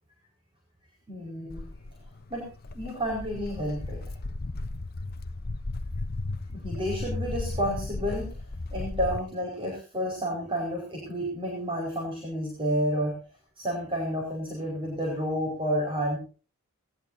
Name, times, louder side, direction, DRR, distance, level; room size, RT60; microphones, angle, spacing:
voice 1, 1.1-1.6 2.3-2.5 2.7-4.0 6.5-8.3 8.7-13.1 13.6-16.2, equal, 25° right, -1 dB, 4.9 m, -30 dB
Walk footsteps, 1.5-9.2, left 2 dB, 45° left, 0.8 m, -35 dB
19.5 x 18.5 x 2.7 m, 0.37 s
head